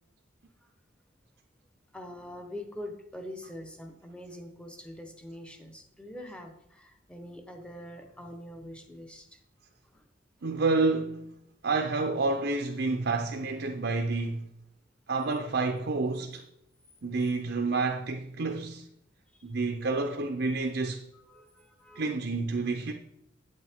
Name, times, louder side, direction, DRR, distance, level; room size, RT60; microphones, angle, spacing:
voice 1, 1.9-9.4 9.8-10.0 19.3-19.5 21.1-22.1, left 1 dB, 5° left, 0.9 m, -44 dB
voice 2, 10.4-11.4 11.6-14.5 15.1-16.4 17.0-18.9 19.4-21.0 22.0-22.9, right 3 dB, 55° right, 0.6 m, -29 dB
8.6 x 8.4 x 3.6 m
head